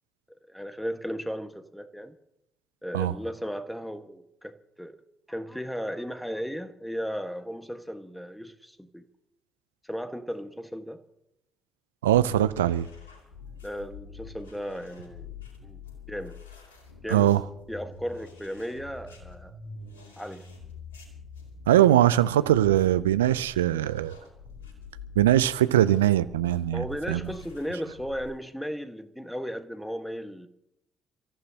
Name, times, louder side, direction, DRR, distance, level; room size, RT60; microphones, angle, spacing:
voice 1, 0.3-2.1 2.8-5.0 5.3-9.1 9.8-11.0 13.6-15.3 15.6-15.8 16.1-16.4 17.0-17.4 17.7-19.5 20.2-20.4 26.7-30.5, equal, ahead, 1.5 m, -35 dB
voice 2, 12.0-12.9 17.1-17.4 21.7-24.2 25.2-27.2, right 12 dB, 85° right, 0.5 m, -21 dB
sound 1, 12.1-28.3, left 4 dB, 85° left, 2.7 m, -46 dB
29.0 x 14.5 x 2.9 m
figure-of-eight pair, 45°, 0 cm